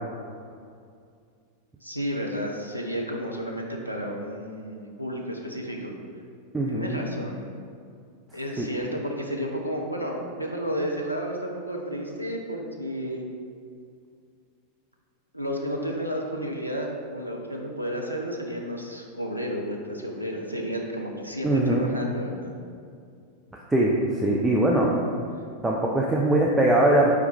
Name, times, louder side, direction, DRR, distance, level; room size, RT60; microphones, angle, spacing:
voice 1, 1.8-5.9 6.7-7.4 8.3-13.2 15.3-22.5, equal, 90° right, 0 dB, 0.4 m, -32 dB
voice 2, 6.5-7.0 8.6-8.7 21.4-21.8 23.7-24.9 25.6-27.1, right 1 dB, 10° right, -3 dB, 0.4 m, -21 dB
4.6 x 3.2 x 3.4 m, 2.3 s
figure-of-eight pair, 90°, 0 cm